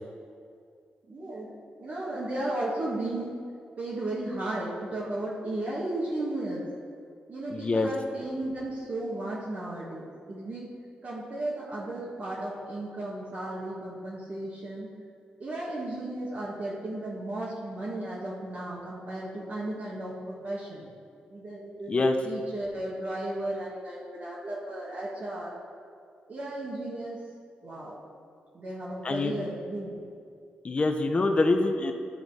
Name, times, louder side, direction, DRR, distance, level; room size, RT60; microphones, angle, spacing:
voice 1, 1.1-1.5 1.8-3.3 3.8-6.6 7.3-10.7 11.0-14.9 15.4-20.9 21.3-25.6 26.3-27.2 27.6-28.0 28.5-30.1, right 1 dB, 50° right, -6 dB, 1.6 m, -34 dB
voice 2, 7.5-7.9 21.9-22.1 29.0-29.3 30.6-31.9, left 3 dB, 35° left, 5 dB, 0.6 m, -25 dB
12.0 x 4.1 x 4.7 m, 2.3 s
cardioid pair, 70°, 3 cm